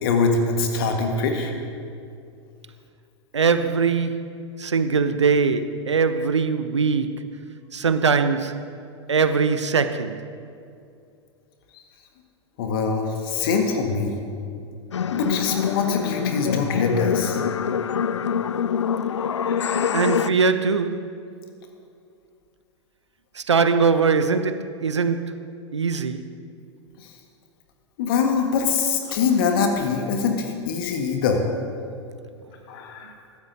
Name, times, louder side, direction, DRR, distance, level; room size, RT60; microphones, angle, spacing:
voice 1, 0.0-1.5 11.7-11.8 12.6-14.2 15.1-17.4 19.4-20.0 27.0-27.1 28.0-31.4 32.7-33.1, left 5 dB, 50° left, 1.5 m, -24 dB
voice 2, 3.3-7.3 7.7-8.7 9.1-10.3 19.9-21.2 23.3-26.4, right 5 dB, 75° right, 0.7 m, -22 dB
sound 1, 14.9-20.3, left 7 dB, 75° left, 0.4 m, -25 dB
23.0 x 13.0 x 2.7 m
figure-of-eight pair, 95°, 15 cm